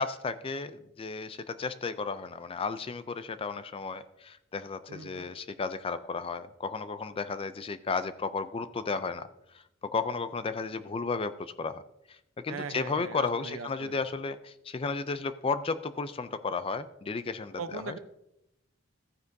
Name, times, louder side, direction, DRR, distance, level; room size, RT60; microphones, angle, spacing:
voice 1, 0.0-9.3 9.8-11.8 12.1-12.2 12.4-18.0, left 4 dB, 25° left, 12 dB, 0.4 m, -33 dB
voice 2, 4.9-5.3 12.5-14.0 17.6-18.0, right 5 dB, 80° right, 11 dB, 0.7 m, -40 dB
14.5 x 9.6 x 2.7 m, 0.85 s
head